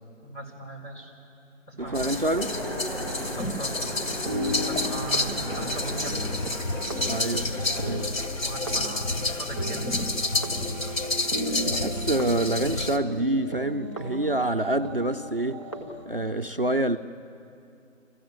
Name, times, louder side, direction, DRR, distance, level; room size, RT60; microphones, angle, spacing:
voice 1, 0.2-1.1 1.7-2.3 3.4-6.2 8.4-10.0 11.5-11.6, right 2 dB, 40° left, -2 dB, 5.0 m, -40 dB
Train, 1.8-8.7, equal, 10° right, 5.9 m, -36 dB
voice 2, 1.8-2.6 7.1-7.5 7.8-8.2 11.6-15.6 16.1-17.0, right 1 dB, 45° right, 10 dB, 0.5 m, -27 dB
sound 1, 1.9-13.0, left 2 dB, 85° left, 1.9 m, -30 dB
sound 2, 3.8-16.1, right 1 dB, 25° left, 1.1 m, -36 dB
26.0 x 15.5 x 7.7 m, 2.6 s
figure-of-eight pair, 180°, 39 cm